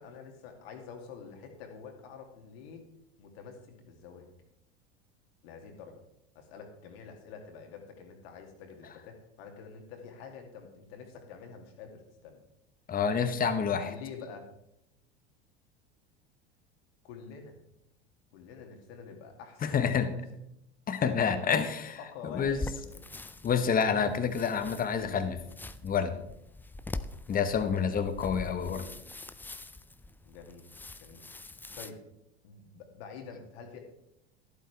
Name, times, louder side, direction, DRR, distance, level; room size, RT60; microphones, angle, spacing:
voice 1, 0.0-2.8 3.2-4.3 5.4-6.0 6.3-12.4 13.8-14.5 17.0-17.6 18.3-20.4 21.0-21.5 22.0-23.1 27.6-27.8 28.5-28.9 30.2-30.6 31.0-31.2 31.8-32.0 32.4-33.8, left 6 dB, 65° left, 3 dB, 2.5 m, -47 dB
voice 2, 12.9-13.9 19.6-20.1 20.9-22.0 22.3-22.6 23.4-25.4 25.8-26.1 27.3-28.8, left 6 dB, 25° left, 9 dB, 1.2 m, -28 dB
sound 1, 22.4-31.9, left 2 dB, 5° left, 0.4 m, -44 dB
12.0 x 11.5 x 3.5 m, 0.80 s
hypercardioid pair, 80°, 33 cm